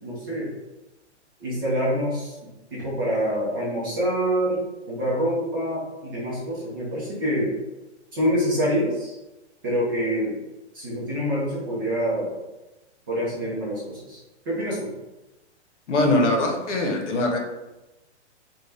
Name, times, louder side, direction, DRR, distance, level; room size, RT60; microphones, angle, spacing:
voice 1, 0.0-0.5 1.4-4.6 4.9-7.6 8.1-9.2 9.6-10.4 10.7-12.4 13.1-14.9, equal, 20° right, -8 dB, 0.5 m, -26 dB
voice 2, 15.9-17.4, left 1 dB, 75° left, 1 dB, 0.9 m, -22 dB
2.7 x 2.3 x 3.3 m, 1.0 s
hypercardioid pair, 170°, 36 cm